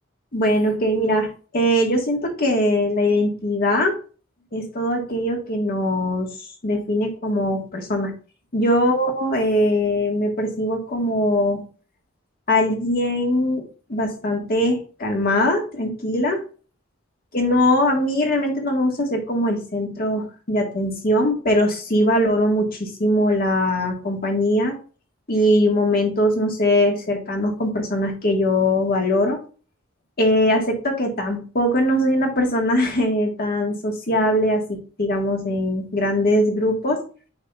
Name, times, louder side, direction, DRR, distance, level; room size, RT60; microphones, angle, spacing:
voice 1, 0.3-4.0 4.5-6.3 6.6-8.1 8.5-11.6 12.5-16.4 17.3-24.7 25.3-29.4 30.2-37.0, left 1 dB, 50° left, 2 dB, 1.4 m, -21 dB
8.6 x 5.4 x 2.3 m, 0.38 s
head